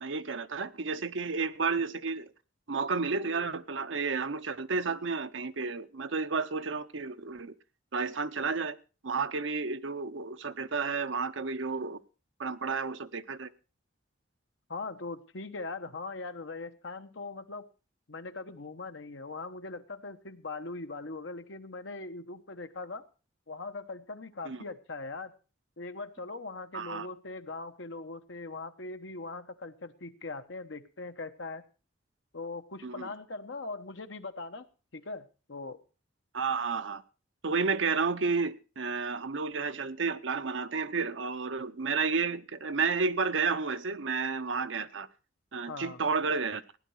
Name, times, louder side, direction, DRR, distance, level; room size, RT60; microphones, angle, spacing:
voice 1, 0.0-2.3 2.7-7.5 7.9-8.8 9.0-12.0 12.4-13.5 24.4-24.6 26.7-27.1 32.8-33.1 36.3-37.0 37.4-45.1 45.5-46.6, right 4 dB, 80° right, 10 dB, 0.8 m, -31 dB
voice 2, 14.7-17.7 18.1-23.1 23.5-25.3 25.8-31.6 32.3-34.7 34.9-35.8 45.7-46.0, left 3 dB, 75° left, 8 dB, 1.1 m, -40 dB
16.0 x 10.5 x 4.7 m, 0.34 s
head